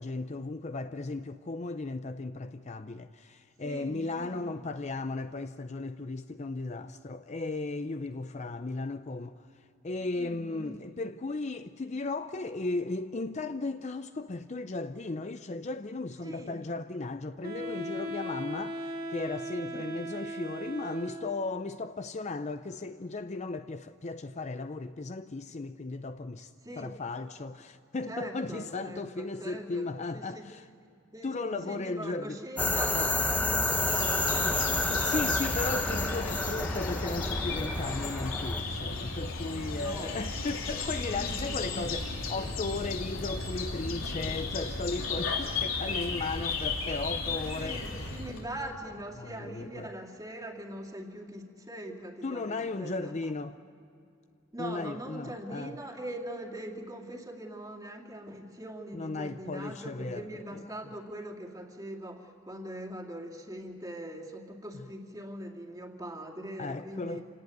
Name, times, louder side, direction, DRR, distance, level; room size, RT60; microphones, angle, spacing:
voice 1, 0.0-9.4 9.8-26.5 26.8-30.6 31.2-32.4 32.9-33.1 34.9-47.8 49.2-49.9 52.2-53.6 54.6-55.7 58.9-60.3 60.5-60.6 66.6-67.2, left 3 dB, 35° left, 0.5 m, -36 dB
voice 2, 3.6-4.5 10.1-10.8 16.2-16.6 19.7-19.8 26.6-26.9 28.1-29.9 30.1-30.5 31.1-35.5 36.2-36.3 39.8-40.2 41.1-41.8 47.6-53.1 54.5-67.2, right 1 dB, 20° right, 2.3 m, -42 dB
Wind instrument woodwind instrument, 17.4-21.5, equal, 45° right, 1.8 m, -38 dB
sound 1, 32.6-38.6, left 2 dB, 10° left, 0.9 m, -29 dB
sound 2, 33.6-48.4, left 3 dB, 80° left, 3.4 m, -35 dB
27.5 x 18.5 x 9.4 m
head